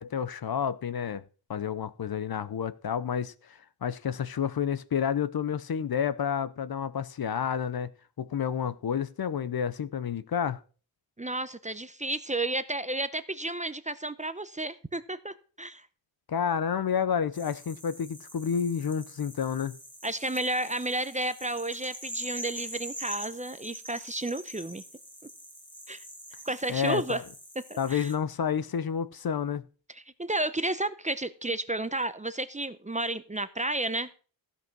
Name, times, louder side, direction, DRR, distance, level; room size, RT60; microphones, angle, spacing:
voice 1, 0.0-1.2 1.5-7.9 8.2-10.6 16.3-19.7 26.7-27.2 27.8-29.6, left 7 dB, 55° left, 0.7 m, -30 dB
voice 2, 11.2-15.9 20.0-24.8 25.9-26.0 26.4-27.2 27.7-28.1 30.2-34.2, right 2 dB, 15° right, 0.7 m, -32 dB
sound 1, 17.3-28.2, equal, 10° left, 2.4 m, -44 dB
15.0 x 5.4 x 6.0 m
wide cardioid pair, 95°, 45 cm